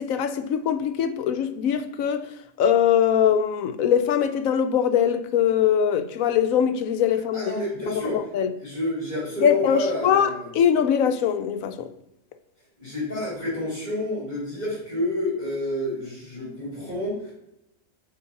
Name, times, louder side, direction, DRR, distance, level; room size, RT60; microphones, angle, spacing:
voice 1, 0.0-2.3 2.6-7.5 7.9-8.0 8.3-8.5 9.4-11.9, left 8 dB, 75° left, 1.1 m, -22 dB
voice 2, 7.3-8.2 8.6-10.5 12.8-17.3, left 1 dB, 30° left, 3.3 m, -29 dB
6.8 x 4.7 x 5.7 m
omnidirectional pair, 1.5 m